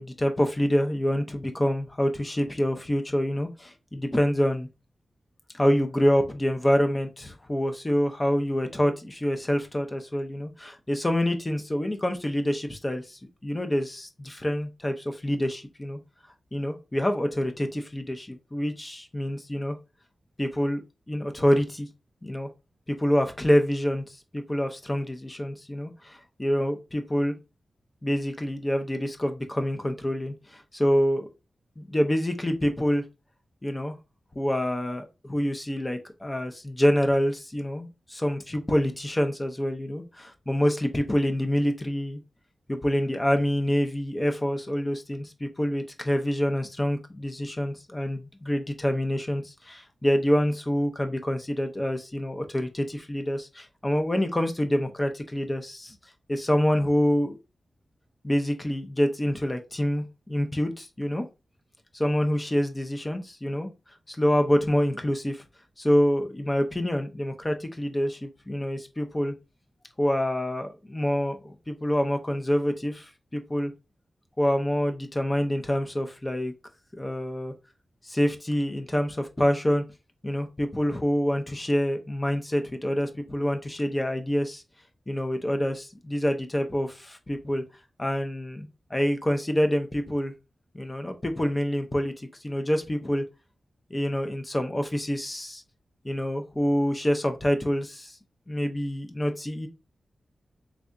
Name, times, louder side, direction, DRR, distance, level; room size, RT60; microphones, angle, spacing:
voice 1, 0.0-4.7 5.5-16.0 16.5-19.8 20.4-20.8 21.1-21.9 22.2-22.5 22.9-24.0 24.3-27.3 28.0-31.3 31.8-33.0 33.6-34.0 34.4-42.2 42.7-56.0 56.3-57.4 58.2-61.2 61.9-63.7 64.1-65.4 65.8-69.3 70.0-73.7 74.4-76.5 76.9-77.5 78.0-79.8 80.2-84.6 85.1-87.6 88.0-90.3 90.7-93.2 93.9-95.6 96.0-98.1 98.5-99.7, equal, 15° left, 0.5 m, -26 dB
3.6 x 3.3 x 2.5 m
wide cardioid pair, 175°, 0 cm